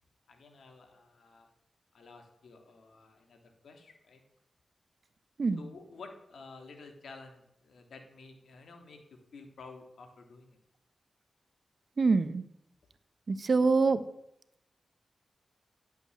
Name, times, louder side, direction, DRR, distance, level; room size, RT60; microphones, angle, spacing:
voice 1, 0.3-1.5 1.9-4.2 5.6-10.6, left 4 dB, 85° left, 4 dB, 3.1 m, -51 dB
voice 2, 12.0-12.4 13.3-14.0, right 4 dB, 60° right, 12 dB, 1.3 m, -25 dB
16.5 x 8.2 x 8.5 m, 0.78 s
cardioid pair, 50°, 0 cm